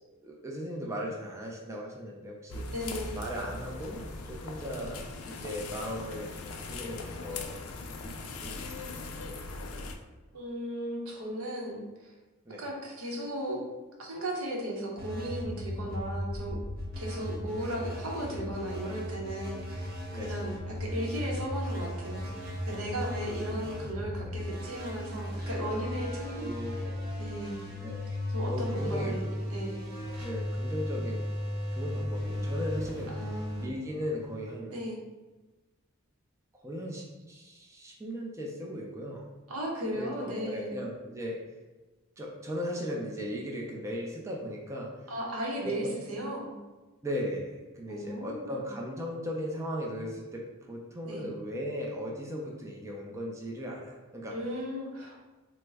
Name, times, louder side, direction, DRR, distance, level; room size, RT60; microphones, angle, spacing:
voice 1, 0.2-2.6 3.2-4.0 4.3-7.6 8.0-9.2 12.5-12.6 20.1-20.3 23.6-23.7 24.2-24.3 26.3-27.1 27.8-28.0 28.5-29.1 30.2-31.2 31.7-34.8 36.6-39.3 40.0-41.4 42.2-44.9 45.6-45.9 47.0-54.3, equal, 15° right, -2 dB, 0.4 m, -37 dB
sound 1, 2.5-9.9, left 3 dB, 75° left, 0.4 m, -40 dB
voice 2, 2.7-3.2 10.3-12.1 12.6-13.6 14.0-16.6 17.0-26.9 27.2-27.7 28.3-29.8 33.1-33.6 34.7-35.0 39.5-40.8 45.1-46.5 47.9-48.7 51.0-51.3 54.3-55.2, equal, 85° right, -1 dB, 0.7 m, -36 dB
sound 2, 15.0-34.5, equal, 45° right, 0.7 m, -36 dB
3.3 x 2.0 x 3.3 m, 1.2 s
head